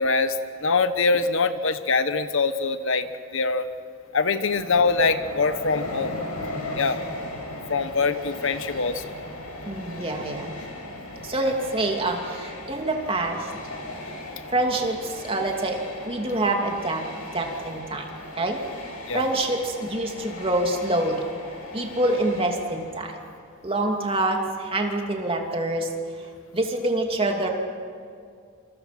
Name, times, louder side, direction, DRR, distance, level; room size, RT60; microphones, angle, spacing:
voice 1, 0.0-3.7 4.1-6.2 6.8-7.0 7.7-9.0 19.1-19.3, left 4 dB, 60° left, 10 dB, 1.1 m, -23 dB
Train, 4.4-23.3, left 1 dB, 85° left, 7.0 m, -37 dB
voice 2, 9.6-10.5 11.2-13.5 14.5-17.0 17.3-18.1 18.4-21.2 21.7-23.1 23.6-25.9 26.5-27.5, right 1 dB, 25° right, 2 dB, 2.8 m, -26 dB
28.0 x 27.5 x 6.1 m, 2.3 s
head